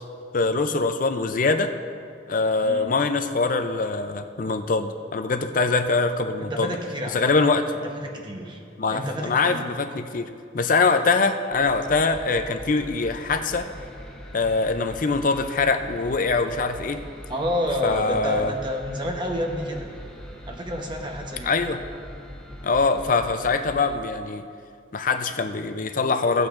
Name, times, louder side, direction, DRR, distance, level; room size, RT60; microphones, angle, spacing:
voice 1, 0.3-1.7 2.3-6.8 7.1-7.7 8.8-10.3 10.5-13.7 14.3-17.0 17.8-18.5 21.4-21.8 22.6-24.4 24.9-26.5, left 4 dB, 45° left, 8 dB, 0.5 m, -23 dB
voice 2, 6.4-7.2 7.8-8.6 8.9-9.7 17.3-19.9 20.5-21.5, equal, 25° right, 1 dB, 1.0 m, -29 dB
sound 1, 11.5-24.0, equal, 5° left, 0.9 m, -41 dB
17.0 x 8.5 x 2.5 m, 2.4 s
head